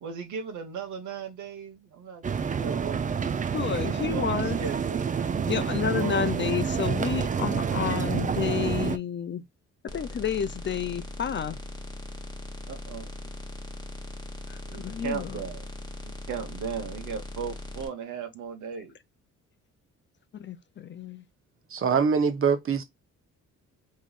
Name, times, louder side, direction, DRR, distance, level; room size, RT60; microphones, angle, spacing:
voice 1, 0.0-3.4 4.1-5.1 5.9-6.6 12.7-13.1 14.7-15.7 16.0-19.0, right 6 dB, 75° right, 1.3 m, -37 dB
sound 1, 2.2-9.0, right 6 dB, 25° right, 0.5 m, -28 dB
voice 2, 3.5-4.6 5.5-9.4 9.9-11.6 14.5-15.4 20.3-21.2, left 8 dB, 40° left, 0.5 m, -30 dB
Phat sawtooth wavetable, 9.9-17.9, left 1 dB, 15° left, 1.0 m, -40 dB
voice 3, 21.7-22.8, right 6 dB, 45° right, 1.0 m, -23 dB
3.6 x 3.1 x 2.4 m
cardioid pair, 90°, 30 cm